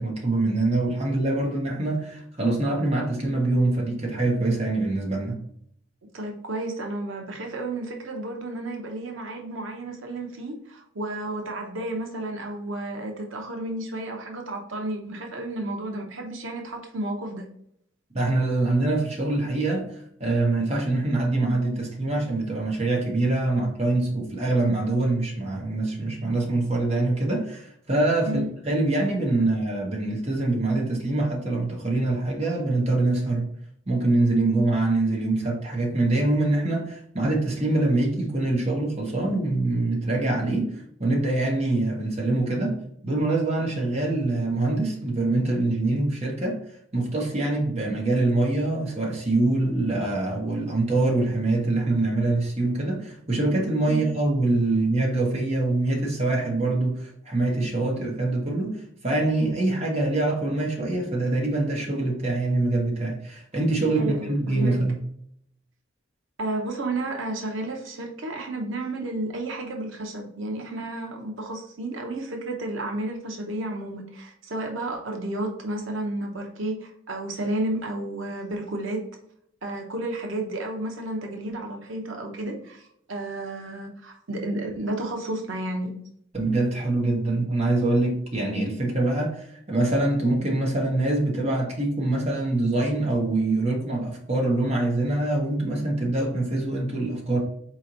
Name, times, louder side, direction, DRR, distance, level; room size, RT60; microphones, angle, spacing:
voice 1, 0.0-5.4 18.1-19.8 20.2-33.4 33.9-42.8 43.0-46.6 46.9-65.0 86.3-97.4, right 2 dB, 35° right, -2 dB, 1.1 m, -24 dB
voice 2, 6.1-17.5 28.2-28.5 53.9-54.1 64.0-64.8 66.4-79.0 79.6-85.9, right 1 dB, 90° right, 2 dB, 0.9 m, -32 dB
4.3 x 3.1 x 3.9 m, 0.69 s
head